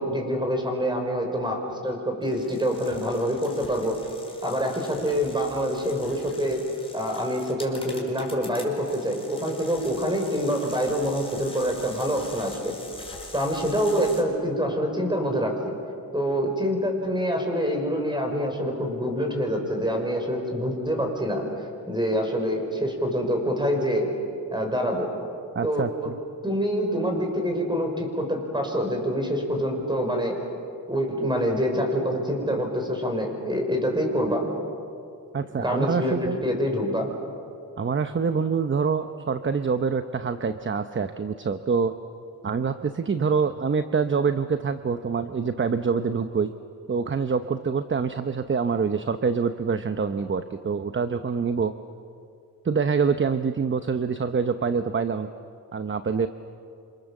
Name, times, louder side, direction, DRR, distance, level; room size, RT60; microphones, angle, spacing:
voice 1, 0.0-4.0 4.4-6.6 6.9-12.7 13.3-15.7 16.1-21.4 21.9-24.1 24.5-25.1 25.6-25.8 26.4-30.4 30.9-34.5 35.6-37.1, equal, 10° right, 3 dB, 5.6 m, -26 dB
sound 1, 2.2-14.2, left 2 dB, 15° left, 4.7 m, -44 dB
voice 2, 25.5-26.2 35.3-36.4 37.8-41.9 42.4-46.5 46.9-51.7 52.6-55.3 55.7-56.3, right 5 dB, 30° right, 9 dB, 0.8 m, -25 dB
27.5 x 27.0 x 7.3 m, 2.4 s
cardioid pair, 105°, 37 cm